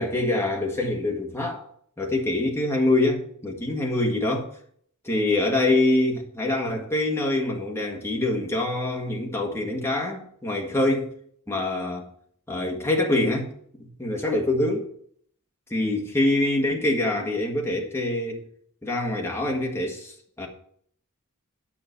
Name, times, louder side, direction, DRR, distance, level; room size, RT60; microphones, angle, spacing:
voice 1, 0.0-1.6 2.0-4.5 5.0-11.1 11.5-12.1 12.5-13.5 13.8-14.9 15.7-18.4 18.8-20.5, left 2 dB, 10° left, 0 dB, 1.6 m, -25 dB
8.7 x 6.1 x 6.8 m, 0.64 s
head